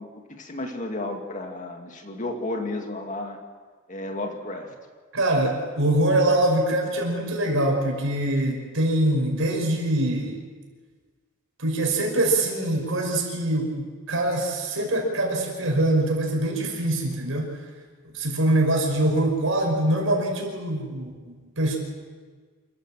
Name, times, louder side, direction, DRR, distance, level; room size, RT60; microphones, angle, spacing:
voice 1, 0.0-3.4 3.9-4.7, left 2 dB, 35° left, 3 dB, 2.2 m, -33 dB
voice 2, 5.1-10.3 11.6-17.5 18.1-21.8, right 1 dB, 70° right, 1 dB, 5.5 m, -24 dB
27.5 x 13.5 x 7.5 m, 1.5 s
head